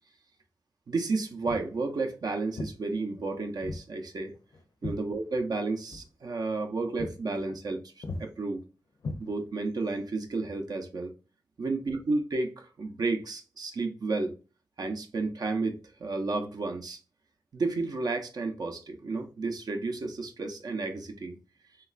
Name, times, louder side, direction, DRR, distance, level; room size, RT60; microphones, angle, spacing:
voice 1, 0.9-4.3 4.8-8.6 9.2-11.1 11.6-14.3 14.8-17.0 17.5-21.4, right 3 dB, 60° right, 0.5 m, -32 dB
Walk footsteps, 1.4-1.7 2.6-2.8 3.6-3.9 4.2-5.6 5.9-6.1 6.5-6.7 7.0-7.2 7.5-7.8 8.0-8.3 9.0-9.7, left 2 dB, 55° left, 0.5 m, -38 dB
3.1 x 2.3 x 2.3 m
cardioid pair, 70°, 8 cm